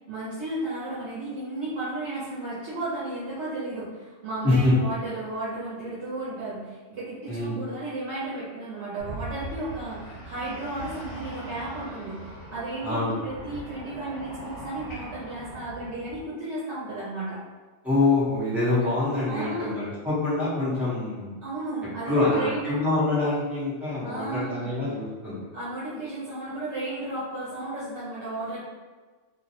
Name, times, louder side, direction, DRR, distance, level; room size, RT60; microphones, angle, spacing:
voice 1, 0.1-12.2 12.5-17.4 18.8-18.9 19.3-19.7 21.4-22.8 24.0-24.8 25.5-28.6, right 2 dB, 70° right, -9 dB, 0.9 m, -34 dB
sound 1, 9.0-16.2, right 1 dB, 50° left, 1.1 m, -41 dB
voice 2, 17.8-21.3 22.0-25.4, left 2 dB, ahead, -10 dB, 0.7 m, -25 dB
2.5 x 2.0 x 2.7 m, 1.3 s
omnidirectional pair, 1.2 m